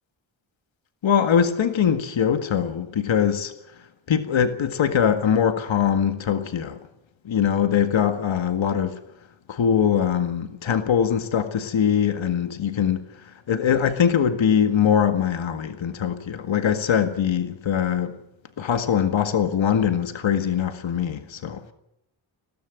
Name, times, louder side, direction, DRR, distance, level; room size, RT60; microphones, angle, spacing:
voice 1, 1.0-3.5 4.1-6.8 7.3-9.0 9.5-13.1 13.5-18.2 18.6-21.6, left 8 dB, 80° left, 1.9 m, -22 dB
21.0 x 17.5 x 7.7 m
wide cardioid pair, 130°, 46 cm